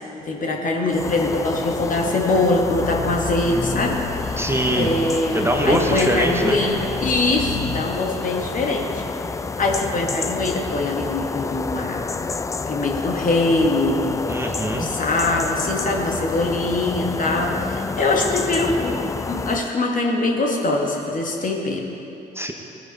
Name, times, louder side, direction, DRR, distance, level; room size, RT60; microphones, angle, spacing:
voice 1, 0.2-4.4 4.7-8.9 9.6-12.1 12.7-14.3 14.7-21.9, left 2 dB, 40° left, 0 dB, 1.9 m, -23 dB
sound 1, 0.9-19.7, left 4 dB, 15° left, 0.4 m, -29 dB
sound 2, 2.6-7.9, left 3 dB, 70° left, 2.3 m, -32 dB
voice 2, 4.4-4.9 5.3-6.6 14.3-14.9 22.3-22.5, right 1 dB, 10° right, 2 dB, 1.3 m, -22 dB
18.0 x 10.0 x 4.2 m, 2.9 s
figure-of-eight pair, 45°, 20 cm